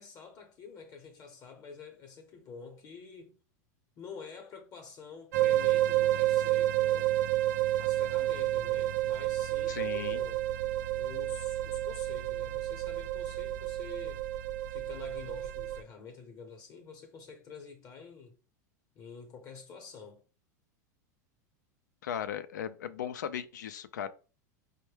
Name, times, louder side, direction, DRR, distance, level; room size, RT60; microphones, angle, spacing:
voice 1, 0.0-3.4 4.0-7.3 7.8-10.4 11.0-14.2 14.7-18.4 18.9-20.2, left 5 dB, 40° left, 0.8 m, -48 dB
sound 1, 5.3-15.8, right 14 dB, 75° right, 0.4 m, -30 dB
voice 2, 9.7-10.2 22.0-24.1, left 9 dB, 85° left, 0.4 m, -37 dB
4.4 x 2.1 x 3.2 m
hypercardioid pair, 100°, 9 cm